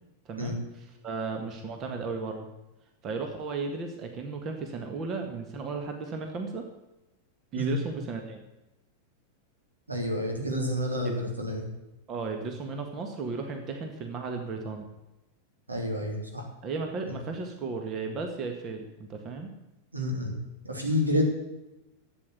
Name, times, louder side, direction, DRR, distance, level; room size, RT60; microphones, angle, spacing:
voice 1, 0.3-2.5 3.0-6.7 7.5-8.4 11.1-11.2 12.1-14.9 16.6-19.5, right 4 dB, 30° right, 4 dB, 1.8 m, -35 dB
voice 2, 9.9-11.7 15.7-16.4 19.9-20.3 20.7-21.2, left 1 dB, 80° right, 1 dB, 3.4 m, -29 dB
12.5 x 8.7 x 8.2 m, 0.96 s
figure-of-eight pair, 90°, 0 cm